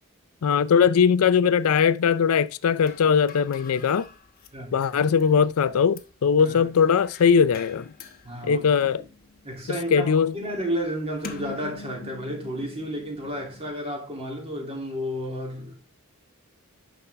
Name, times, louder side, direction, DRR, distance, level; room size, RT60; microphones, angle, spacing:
voice 1, 0.4-4.1 4.7-7.8 8.4-9.0 9.9-10.3, left 6 dB, 75° left, 0.4 m, -20 dB
sound 1, 2.9-13.8, left 4 dB, 40° left, 1.0 m, -45 dB
voice 2, 8.2-8.7 9.0-9.1 9.4-15.7, equal, 25° right, 2.6 m, -32 dB
9.7 x 6.0 x 3.3 m
head